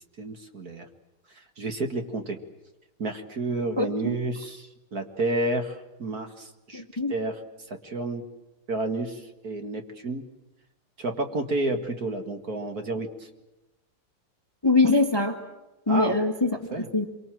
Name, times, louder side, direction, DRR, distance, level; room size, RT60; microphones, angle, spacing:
voice 1, 0.2-0.9 1.6-2.4 3.0-7.4 7.7-8.2 8.7-10.2 11.0-13.3 15.9-16.2 16.7-16.9, right 2 dB, 45° right, 5 dB, 2.3 m, -30 dB
voice 2, 3.8-4.1 6.7-7.1 14.6-15.4 15.9-16.6 16.9-17.0, left 3 dB, 15° left, 5 dB, 1.6 m, -23 dB
26.5 x 24.0 x 7.6 m, 1.0 s
omnidirectional pair, 2.3 m